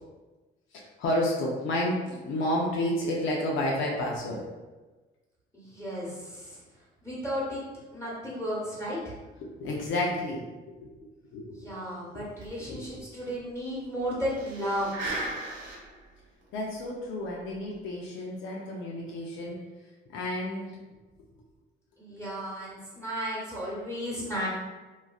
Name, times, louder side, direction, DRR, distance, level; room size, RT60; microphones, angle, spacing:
voice 1, 0.7-4.5 9.4-11.7 12.1-12.3 12.6-13.1 16.5-19.6 20.1-20.8, left 1 dB, 80° left, -3 dB, 0.5 m, -31 dB
voice 2, 5.5-6.6 7.0-7.6 7.9-9.1 11.5-14.9 22.0-24.5, equal, 15° left, -7 dB, 1.2 m, -34 dB
sound 1, 12.4-12.5 12.8-12.9 13.3-13.4 14.3-16.0 16.5-16.6 17.5-17.7, right 2 dB, 70° right, 1.0 m, -36 dB
3.0 x 2.4 x 2.3 m, 1.2 s
cardioid pair, 90°, 20 cm